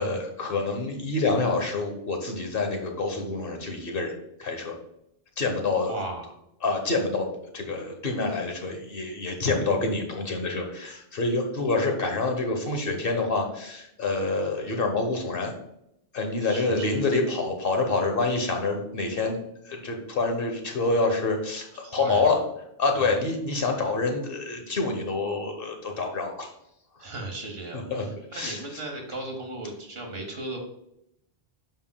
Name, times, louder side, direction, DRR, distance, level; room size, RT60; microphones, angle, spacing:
voice 1, 0.0-4.1 4.4-4.8 5.4-5.9 6.6-15.5 16.1-19.4 19.6-22.4 22.8-26.5 27.7-28.6, left 3 dB, 65° left, 4 dB, 1.3 m, -27 dB
voice 2, 5.8-6.4 16.4-17.1 21.8-22.4 23.0-23.2 27.0-30.6, right 2 dB, 75° right, 3 dB, 1.6 m, -36 dB
8.0 x 5.5 x 2.3 m, 0.79 s
omnidirectional pair, 1.0 m